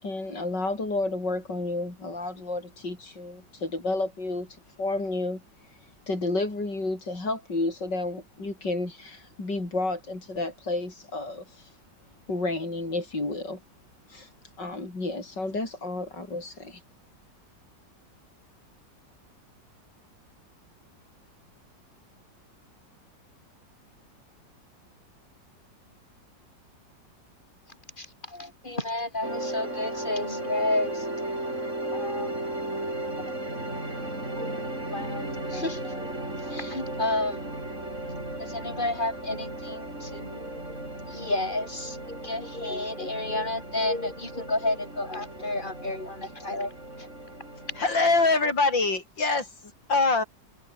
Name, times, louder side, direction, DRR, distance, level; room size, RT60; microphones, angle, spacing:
voice 1, 0.0-5.4 5.7-5.8 6.1-11.8 12.3-13.6 14.1-14.3 14.6-16.8, left 2 dB, 70° left, 7.3 m, -31 dB
voice 2, 28.0-31.3 31.9-32.3 34.4-34.6 34.9-36.2 36.4-37.5 38.4-40.8 41.1-46.7 47.0-47.1, left 2 dB, 25° left, 5.0 m, -31 dB
sound 1, 29.2-48.3, right 1 dB, 40° right, 8.5 m, -35 dB
voice 3, 47.8-49.5 49.9-50.2, left 3 dB, 90° left, 5.5 m, -23 dB
omnidirectional pair, 2.0 m